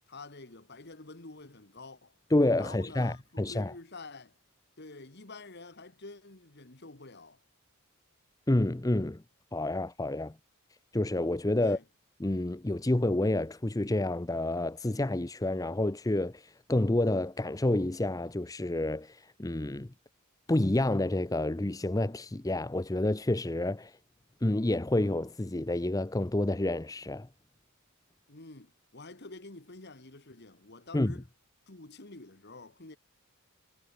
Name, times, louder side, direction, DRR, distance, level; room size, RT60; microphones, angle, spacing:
voice 1, 0.1-2.1 2.5-4.4 4.8-7.4 11.6-11.8 28.3-31.3 31.7-33.0, left 3 dB, 50° left, 1.8 m, -48 dB
voice 2, 2.3-3.7 8.5-9.2 9.5-10.3 10.9-11.8 12.2-19.9 20.5-24.0 24.4-27.3 30.9-31.1, left 1 dB, 15° left, 0.6 m, -29 dB
head